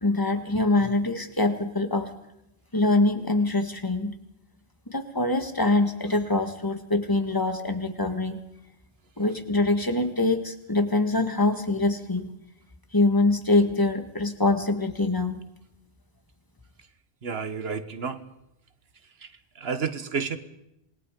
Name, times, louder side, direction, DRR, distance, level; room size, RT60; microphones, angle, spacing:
voice 1, 0.0-2.1 2.7-4.1 4.9-8.4 9.2-12.3 12.9-15.4, left 2 dB, 20° left, 8 dB, 1.8 m, -24 dB
voice 2, 17.2-18.2 19.6-20.4, right 5 dB, 75° right, 11 dB, 1.5 m, -30 dB
27.0 x 20.5 x 5.2 m, 0.85 s
omnidirectional pair, 1.1 m